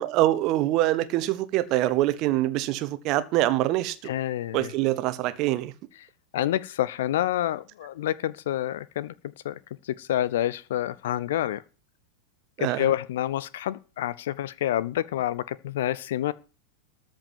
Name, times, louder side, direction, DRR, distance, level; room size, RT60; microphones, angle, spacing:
voice 1, 0.0-4.0 4.5-5.7 12.6-12.9, right 15 dB, 40° right, 1.2 m, -24 dB
voice 2, 4.0-4.7 6.3-9.1 9.4-9.6 9.9-11.6 12.6-16.3, left 12 dB, 55° left, 0.6 m, -28 dB
13.5 x 5.4 x 9.3 m
figure-of-eight pair, 90°, 0 cm